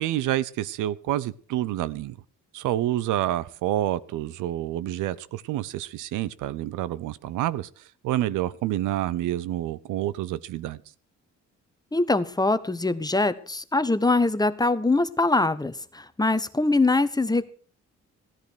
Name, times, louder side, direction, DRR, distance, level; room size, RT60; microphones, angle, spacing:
voice 1, 0.0-2.2 2.5-10.8, right 13 dB, 90° right, 0.8 m, -28 dB
voice 2, 11.9-17.5, left 2 dB, 15° left, 1.0 m, -23 dB
15.5 x 10.5 x 6.3 m
cardioid pair, 90°, 30 cm